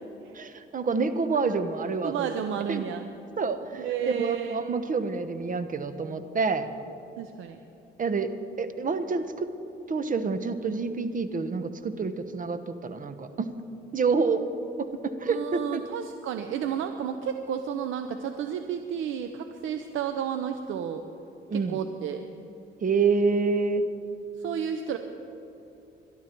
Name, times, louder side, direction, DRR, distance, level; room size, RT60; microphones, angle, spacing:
voice 1, 0.3-2.3 2.7-2.9 3.4-6.7 8.0-9.5 9.9-13.5 13.9-14.4 14.8-15.8 21.5-21.8 22.8-23.9, right 4 dB, 40° right, 10 dB, 1.2 m, -28 dB
voice 2, 2.0-3.1 3.8-4.6 7.2-7.6 15.3-21.0 21.5-22.2 24.4-25.0, right 8 dB, 85° right, 7 dB, 0.8 m, -32 dB
22.5 x 12.5 x 4.6 m, 2.8 s
cardioid pair, 90°, 20 cm